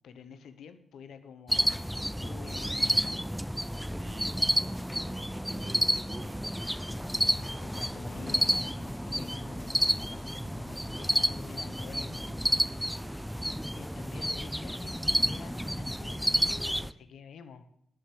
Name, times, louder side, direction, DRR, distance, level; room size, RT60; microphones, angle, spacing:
voice 1, 0.0-3.3 6.8-13.1 13.7-17.7, left 6 dB, 85° left, 11 dB, 1.0 m, -49 dB
sound 1, 1.5-16.9, equal, ahead, 0.4 m, -30 dB
voice 2, 3.8-6.8 12.9-13.5, right 2 dB, 50° right, 3 dB, 2.8 m, -50 dB
11.0 x 7.1 x 7.7 m, 0.74 s
supercardioid pair, 55°, 0 cm